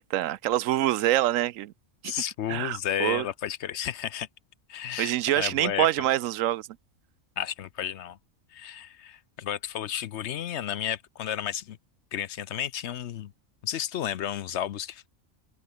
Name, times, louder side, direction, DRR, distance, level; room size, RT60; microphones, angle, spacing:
voice 1, 0.0-1.7 2.0-2.1 2.5-3.2 5.0-6.7, right 14 dB, 80° right, 1.0 m, -25 dB
voice 2, 2.1-4.3 4.7-5.9 7.4-8.2 8.5-11.8 12.1-13.3 13.6-15.1, left 10 dB, 65° left, 0.9 m, -32 dB
open air
omnidirectional pair, 1.4 m